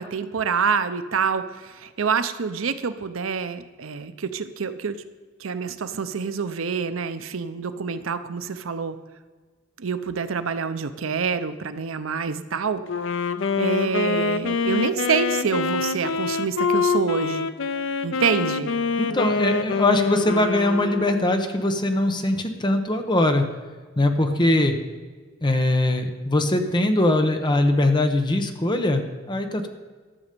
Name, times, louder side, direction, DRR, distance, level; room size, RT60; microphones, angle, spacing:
voice 1, 0.0-5.0 5.4-9.0 9.8-12.8 13.6-17.5 18.0-18.7, right 6 dB, 85° right, 11 dB, 0.7 m, -26 dB
Wind instrument woodwind instrument, 12.9-21.5, left 4 dB, 65° left, 0.6 m, -25 dB
voice 2, 19.0-23.4 24.0-24.8 25.4-29.7, left 1 dB, 25° left, 6 dB, 1.0 m, -21 dB
12.5 x 7.1 x 6.8 m, 1.4 s
head